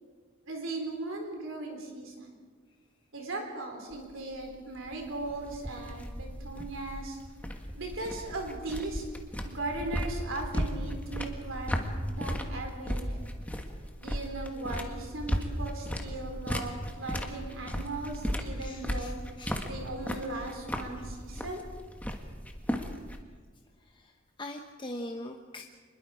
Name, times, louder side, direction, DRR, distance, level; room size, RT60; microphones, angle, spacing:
voice 1, 0.5-2.4 3.1-7.2 7.7-9.0 9.4-11.8 12.1-13.2 14.0-19.2 19.6-21.6, right 2 dB, 70° right, 2 dB, 3.9 m, -38 dB
sound 1, 3.9-23.2, equal, 5° left, 1.5 m, -36 dB
voice 2, 18.6-19.5 23.9-24.0 24.4-25.6, left 1 dB, 25° left, 2 dB, 1.0 m, -41 dB
25.5 x 21.5 x 4.9 m, 1.5 s
head